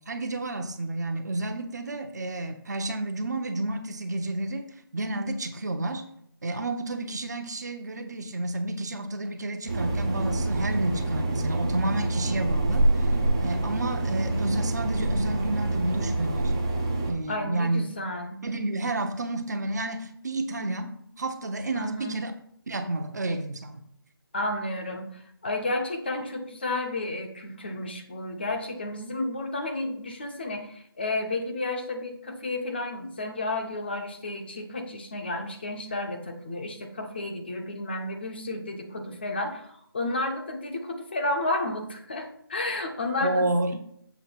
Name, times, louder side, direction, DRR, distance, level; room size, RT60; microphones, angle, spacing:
voice 1, 0.1-4.7 4.9-6.0 6.4-16.5 17.0-17.9 18.4-20.9 21.2-22.3 22.7-23.8 43.2-43.8, right 2 dB, 45° right, 6 dB, 0.9 m, -30 dB
sound 1, 9.7-17.1, right 2 dB, 15° right, 0.5 m, -26 dB
voice 2, 17.3-18.4 21.7-22.2 24.3-43.5, left 2 dB, 25° left, 3 dB, 0.7 m, -32 dB
7.1 x 3.2 x 6.0 m, 0.70 s
figure-of-eight pair, 170°, 13 cm